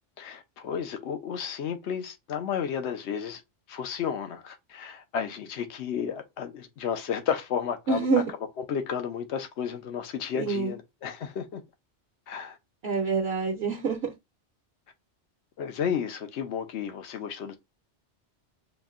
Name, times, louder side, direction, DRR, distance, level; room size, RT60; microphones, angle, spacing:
voice 1, 0.2-3.4 3.7-8.1 8.7-11.6 12.3-12.6 15.6-17.6, left 7 dB, 75° left, 1.0 m, -32 dB
voice 2, 7.9-8.3 10.3-10.7 12.8-14.1, right 4 dB, 60° right, 1.0 m, -26 dB
5.1 x 2.7 x 2.4 m
omnidirectional pair, 1.2 m